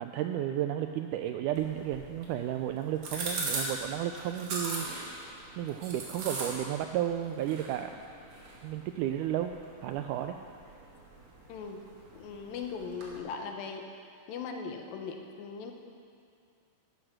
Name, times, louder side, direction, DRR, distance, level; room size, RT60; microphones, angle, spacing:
voice 1, 0.0-5.2 5.6-8.0 8.6-10.4, right 11 dB, 85° right, 6 dB, 1.8 m, -33 dB
sound 1, 1.5-13.2, right 3 dB, 55° right, 3.4 m, -41 dB
voice 2, 11.5-11.8 12.1-13.8 14.3-15.7, left 5 dB, 80° left, 4 dB, 2.8 m, -39 dB
13.0 x 12.5 x 6.0 m, 2.4 s
omnidirectional pair, 4.1 m